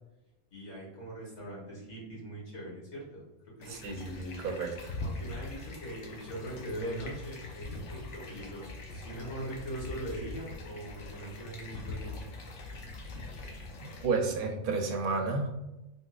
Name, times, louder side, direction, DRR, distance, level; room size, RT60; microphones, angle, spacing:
voice 1, 0.5-3.9 5.0-12.2, right 1 dB, 70° left, -4 dB, 1.6 m, -41 dB
sound 1, 3.6-14.1, left 2 dB, 90° left, 0.9 m, -42 dB
voice 2, 3.7-5.0 13.8-15.5, right 4 dB, 55° right, 1 dB, 0.6 m, -32 dB
3.7 x 2.7 x 2.3 m, 0.96 s
omnidirectional pair, 1.2 m